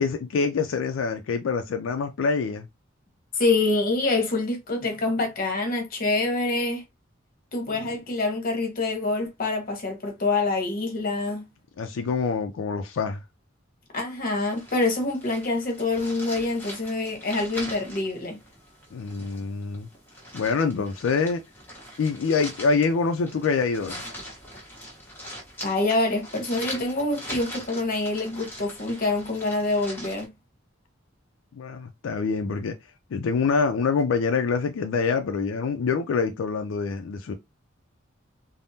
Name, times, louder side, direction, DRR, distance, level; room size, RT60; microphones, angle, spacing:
voice 1, 0.0-2.7 11.8-13.2 18.9-19.9 20.3-21.4 22.0-24.0 31.5-32.8 33.1-37.3, left 5 dB, 85° left, 0.4 m, -25 dB
voice 2, 3.4-6.8 7.5-11.5 13.9-18.4 25.6-30.3, left 2 dB, 45° left, 0.9 m, -26 dB
sound 1, 14.4-30.3, equal, 10° left, 1.0 m, -42 dB
3.4 x 2.0 x 2.7 m
head